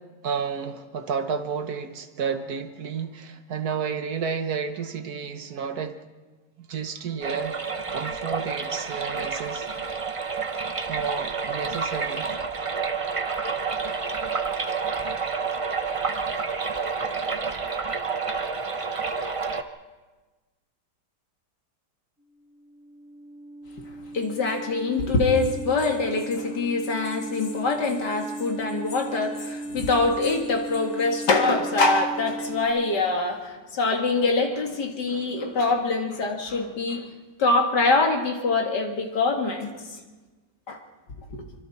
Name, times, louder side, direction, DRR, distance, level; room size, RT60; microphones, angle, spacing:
voice 1, 0.2-6.0 6.6-7.6 7.9-9.7 10.9-12.3, right 6 dB, 65° right, 8 dB, 1.6 m, -31 dB
sound 1, 7.2-19.6, right 5 dB, 30° right, 0.6 m, -29 dB
sound 2, 22.4-32.6, right 2 dB, 5° right, 3.5 m, -37 dB
voice 2, 24.1-37.1 37.4-39.8 40.7-40.8 41.3-41.5, left 3 dB, 75° left, 2 dB, 2.7 m, -24 dB
27.0 x 24.0 x 4.3 m, 1.3 s
omnidirectional pair, 1.8 m